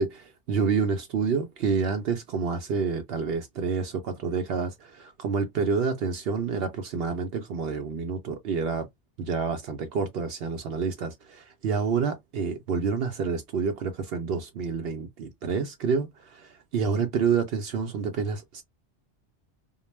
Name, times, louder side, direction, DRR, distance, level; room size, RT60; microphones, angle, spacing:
voice 1, 0.0-8.9 9.2-18.6, right 5 dB, 65° right, 0.7 m, -28 dB
2.3 x 2.0 x 3.0 m
omnidirectional pair, 1.2 m